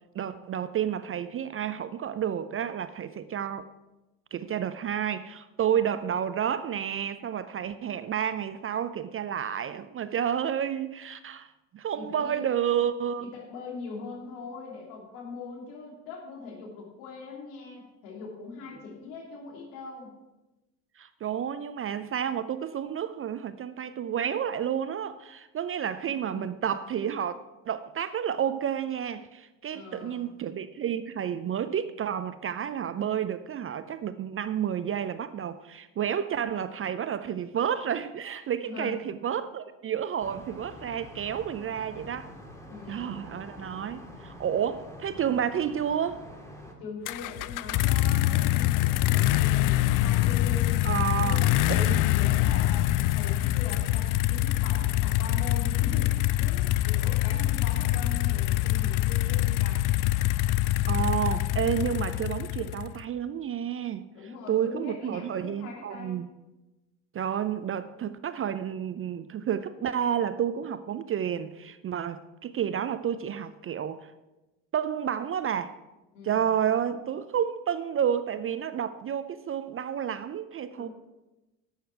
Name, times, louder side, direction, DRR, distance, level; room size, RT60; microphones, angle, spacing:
voice 1, 0.1-3.7 4.3-13.3 21.0-42.3 42.9-46.2 50.9-51.4 51.7-52.0 60.9-64.0 64.5-66.3 67.1-74.1 74.7-75.8 76.2-80.9, right 9 dB, 30° right, 13 dB, 0.5 m, -30 dB
voice 2, 11.9-12.4 13.2-20.1 25.8-26.5 29.7-30.2 38.6-39.2 42.7-43.3 46.8-59.8 61.7-62.2 64.1-66.3 76.1-76.5 80.7-80.9, left 4 dB, 70° left, -1 dB, 3.1 m, -42 dB
sound 1, 40.2-46.7, equal, 5° left, 2.3 m, -46 dB
sound 2, 47.1-63.0, left 15 dB, 45° left, 0.4 m, -25 dB
11.0 x 8.1 x 4.6 m, 1.0 s
hypercardioid pair, 60°, 48 cm